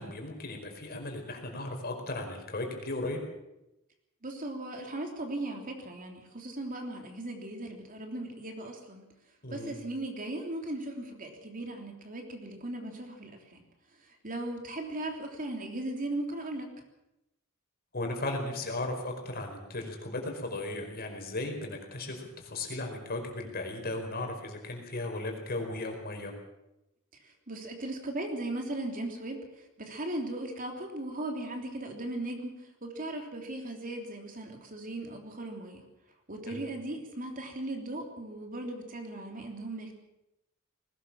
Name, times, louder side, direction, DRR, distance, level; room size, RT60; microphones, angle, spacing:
voice 1, 0.0-3.2 9.4-9.7 17.9-26.3 36.5-36.6, left 2 dB, 45° left, 3 dB, 4.9 m, -36 dB
voice 2, 4.2-9.0 9.5-13.6 14.0-16.7 27.2-35.8 36.3-40.0, right 1 dB, 40° right, 3 dB, 3.3 m, -38 dB
20.5 x 18.5 x 7.3 m, 0.91 s
head